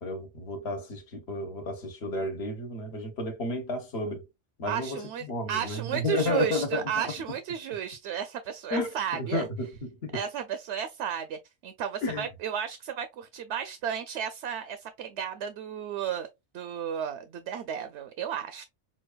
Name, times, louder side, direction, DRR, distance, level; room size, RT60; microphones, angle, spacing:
voice 1, 0.0-4.2 4.6-7.0 8.7-10.2 12.0-12.3, left 2 dB, 65° left, 1.3 m, -32 dB
voice 2, 4.7-9.5 10.1-16.3 16.5-18.6, right 9 dB, 75° right, 0.9 m, -33 dB
6.1 x 2.3 x 2.3 m
omnidirectional pair, 1.2 m